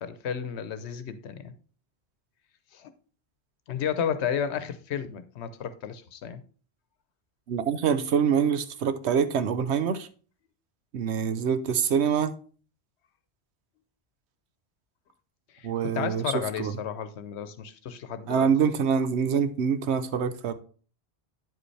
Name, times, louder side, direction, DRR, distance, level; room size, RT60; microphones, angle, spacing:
voice 1, 0.0-1.5 2.7-2.9 3.7-6.4 11.3-11.4 15.5-15.7 15.9-18.5, left 8 dB, 80° left, 1.0 m, -32 dB
voice 2, 7.5-10.1 10.9-12.3 15.6-16.7 18.3-20.5, right 7 dB, 85° right, 1.0 m, -25 dB
9.2 x 5.1 x 3.2 m
omnidirectional pair, 1.1 m